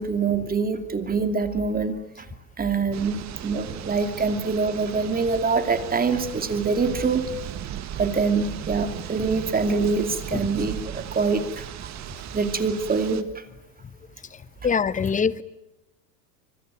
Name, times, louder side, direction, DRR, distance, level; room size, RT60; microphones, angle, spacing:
voice 1, 0.0-2.3 2.6-7.3 7.9-11.7 12.3-13.5, right 4 dB, 20° right, 8 dB, 2.6 m, -25 dB
sound 1, 2.9-13.2, right 11 dB, 35° right, 1.7 m, -37 dB
voice 2, 14.6-15.4, left 6 dB, 15° left, 17 dB, 1.0 m, -23 dB
25.5 x 23.5 x 9.1 m, 0.94 s
hypercardioid pair, 110°, 49 cm